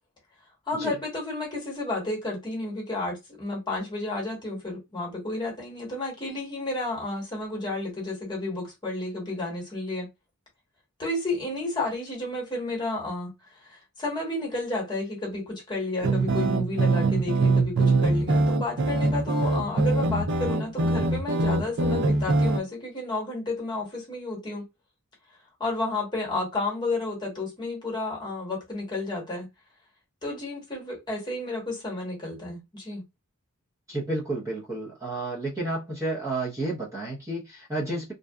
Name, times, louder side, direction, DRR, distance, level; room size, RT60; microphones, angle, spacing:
voice 1, 0.7-10.1 11.0-13.3 13.6-24.7 25.6-29.5 30.2-33.0, left 2 dB, 20° left, 1.1 m, -31 dB
sound 1, 16.0-22.6, right 2 dB, 55° right, 0.4 m, -23 dB
voice 2, 33.9-38.1, right 2 dB, 15° right, 0.7 m, -31 dB
2.7 x 2.2 x 2.3 m
head